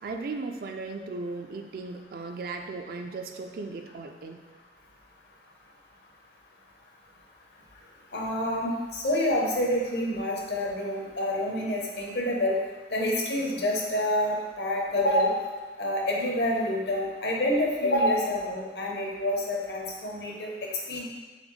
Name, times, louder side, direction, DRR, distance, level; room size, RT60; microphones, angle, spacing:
voice 1, 0.0-4.4, right 3 dB, 55° right, 4 dB, 0.3 m, -36 dB
voice 2, 8.1-12.6 12.9-15.4 15.8-21.0, left 1 dB, 70° left, -2 dB, 0.8 m, -27 dB
4.1 x 3.4 x 3.1 m, 1.3 s
head